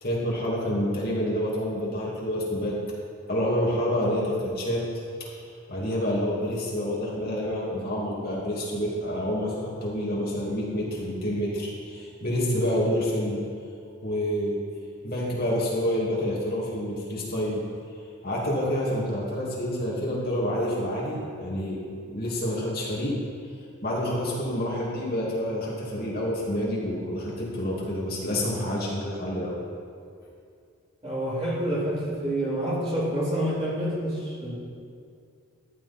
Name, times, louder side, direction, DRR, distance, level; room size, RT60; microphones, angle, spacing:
voice 1, 0.0-2.7 3.3-4.8 5.2-5.3 5.7-13.4 14.0-14.6 15.0-17.6 18.2-21.8 22.1-23.2 23.8-29.6, equal, 45° left, -5 dB, 2.5 m, -28 dB
voice 2, 31.0-34.5, right 1 dB, 25° right, -7 dB, 3.2 m, -28 dB
14.0 x 10.5 x 4.4 m, 2.3 s
head